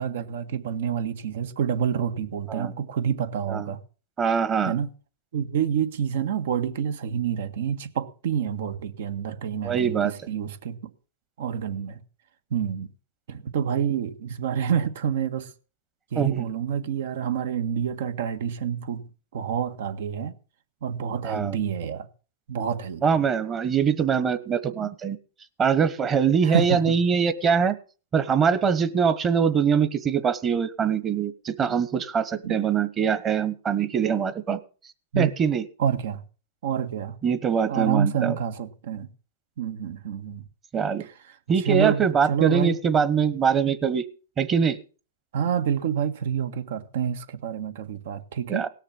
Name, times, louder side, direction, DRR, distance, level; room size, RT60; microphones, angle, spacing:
voice 1, 0.0-3.8 4.6-4.9 5.3-10.9 11.4-12.0 12.5-12.9 13.3-15.5 16.1-19.1 19.3-20.3 20.8-22.1 22.5-23.0 26.4-27.0 32.4-32.6 35.1-35.3 35.8-36.2 36.6-37.2 37.7-39.1 39.6-40.4 41.0-41.1 41.6-42.8 45.3-48.7, right 8 dB, 70° right, 1.6 m, -28 dB
voice 2, 4.2-4.7 9.6-10.1 16.1-16.5 21.2-21.6 23.0-25.2 25.6-27.7 28.1-34.6 35.2-35.6 37.2-38.4 40.7-41.0 41.5-44.0 44.4-44.8 48.5-48.7, right 6 dB, 20° right, 1.3 m, -23 dB
18.0 x 6.7 x 7.1 m
hypercardioid pair, 135°, 0 cm